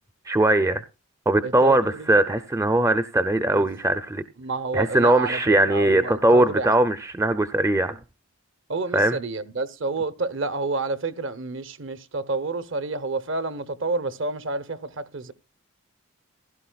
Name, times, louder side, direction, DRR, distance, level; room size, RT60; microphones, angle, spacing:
voice 1, 0.3-0.8 1.3-4.2 4.7-8.0 8.9-9.2, right 1 dB, 15° right, 0.5 m, -20 dB
voice 2, 1.4-2.2 3.5-3.7 4.4-6.8 8.7-15.3, right 3 dB, 60° right, 0.9 m, -29 dB
16.0 x 12.0 x 2.3 m
head